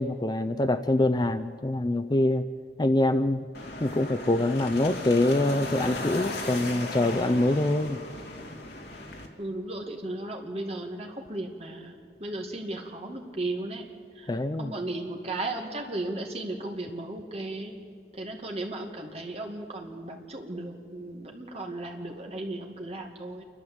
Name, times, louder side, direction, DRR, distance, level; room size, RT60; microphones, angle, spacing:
voice 1, 0.0-2.4 2.8-3.4 3.8-8.0 14.3-14.7, left 1 dB, 25° left, 10 dB, 0.4 m, -25 dB
sound 1, 3.5-9.3, left 2 dB, 65° left, 2.3 m, -36 dB
voice 2, 9.4-13.8 14.1-14.3 14.6-17.7 18.1-23.4, right 2 dB, 35° right, 1 dB, 2.2 m, -35 dB
28.0 x 12.5 x 7.9 m, 2.2 s
head